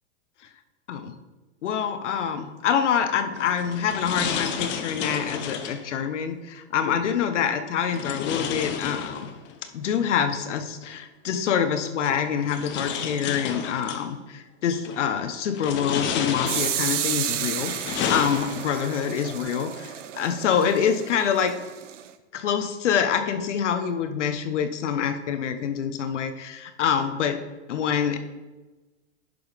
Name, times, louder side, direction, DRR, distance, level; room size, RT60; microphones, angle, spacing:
voice 1, 1.6-9.3 9.7-21.6 22.3-28.2, left 7 dB, 75° left, 9 dB, 1.1 m, -26 dB
sound 1, 3.3-5.9 7.9-9.5 10.9-11.0 12.0-14.1 14.7-15.1 15.5-17.0 17.5-18.9, left 7 dB, 30° left, 0.8 m, -31 dB
sound 2, 16.5-22.1, right 10 dB, 85° right, 0.8 m, -32 dB
11.0 x 4.0 x 5.2 m, 1.1 s
hypercardioid pair, 125°, 36 cm